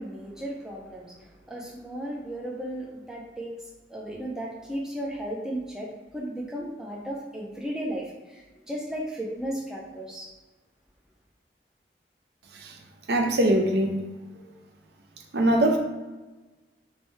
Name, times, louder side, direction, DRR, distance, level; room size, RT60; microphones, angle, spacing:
voice 1, 0.0-3.6 3.9-10.3, right 1 dB, 5° right, -3 dB, 0.5 m, -35 dB
voice 2, 13.1-14.0 15.3-15.8, right 1 dB, 70° right, 3 dB, 0.5 m, -22 dB
3.4 x 3.1 x 3.1 m, 1.2 s
head